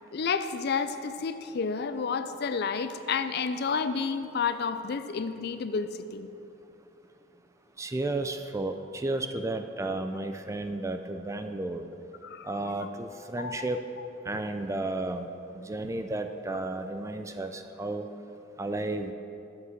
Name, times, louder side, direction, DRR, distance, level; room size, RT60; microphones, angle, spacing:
voice 1, 0.1-6.3 12.2-12.5 12.8-12.9 13.4-13.7, left 5 dB, 55° left, 11 dB, 0.4 m, -30 dB
voice 2, 7.8-11.8 12.5-13.8 14.3-15.3 15.5-18.1 18.6-19.1, right 2 dB, 15° right, 7 dB, 0.4 m, -33 dB
8.1 x 7.9 x 6.3 m, 2.8 s
head